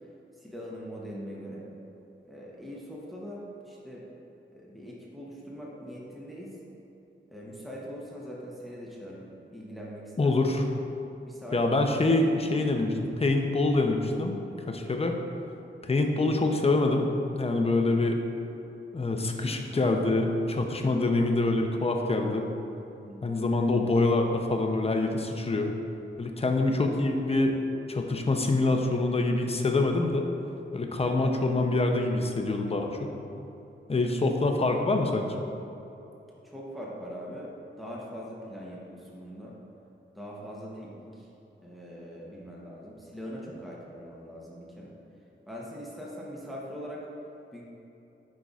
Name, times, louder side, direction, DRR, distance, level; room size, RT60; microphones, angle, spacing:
voice 1, 0.4-1.7 2.2-4.1 4.5-6.6 7.3-10.3 11.2-11.6 23.0-23.4 36.4-39.5 40.1-41.3 41.6-44.9 45.5-47.0 47.5-47.6, equal, ahead, -4 dB, 0.9 m, -42 dB
voice 2, 10.2-10.6 11.5-14.3 14.7-15.1 15.8-17.1 17.3-18.2 18.9-22.5 23.2-25.7 26.2-27.6 27.9-30.3 30.7-33.1 33.9-35.3, left 2 dB, 30° left, 3 dB, 0.6 m, -25 dB
10.0 x 5.2 x 2.4 m, 2.9 s
wide cardioid pair, 105°, 20 cm